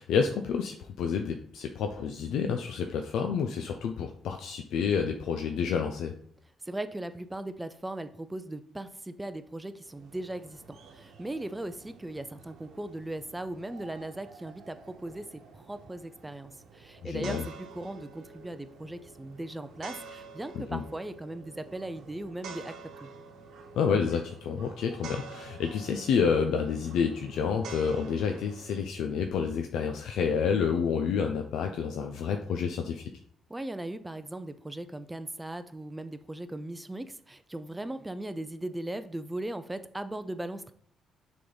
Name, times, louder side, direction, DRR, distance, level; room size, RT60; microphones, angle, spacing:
voice 1, 0.0-6.1 17.0-17.5 20.7-20.8 23.8-33.1, left 6 dB, 80° left, 4 dB, 0.6 m, -29 dB
voice 2, 6.6-22.8 23.0-23.1 33.5-40.7, right 1 dB, 10° right, 12 dB, 0.5 m, -38 dB
sound 1, 9.8-28.8, right 4 dB, 75° right, 1.0 m, -49 dB
6.5 x 3.6 x 4.0 m, 0.64 s
cardioid pair, 90°, 0 cm